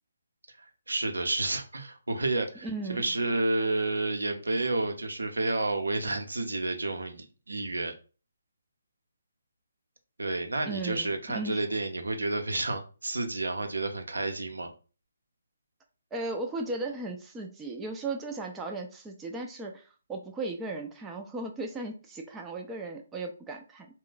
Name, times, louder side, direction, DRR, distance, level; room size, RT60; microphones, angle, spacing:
voice 1, 0.6-7.9 10.2-14.7, right 2 dB, 85° right, 5 dB, 0.7 m, -30 dB
voice 2, 2.6-3.0 10.7-11.6 16.1-23.9, right 2 dB, 10° right, 1 dB, 0.4 m, -36 dB
2.4 x 2.1 x 3.8 m, 0.36 s
figure-of-eight pair, 150°, 0 cm